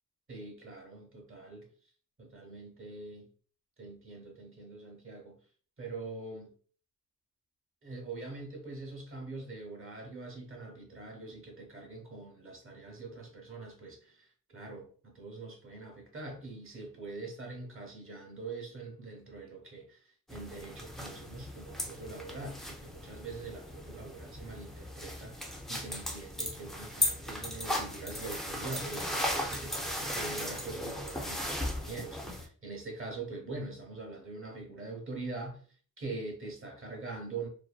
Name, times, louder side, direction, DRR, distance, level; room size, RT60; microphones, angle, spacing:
voice 1, 0.3-1.7 2.2-3.3 3.8-5.4 5.8-6.5 7.8-35.6 36.0-37.5, right 3 dB, 40° right, 0.8 m, -43 dB
sound 1, 20.3-32.5, left 1 dB, ahead, 0.3 m, -37 dB
2.5 x 2.2 x 2.3 m
cardioid pair, 110°, 33 cm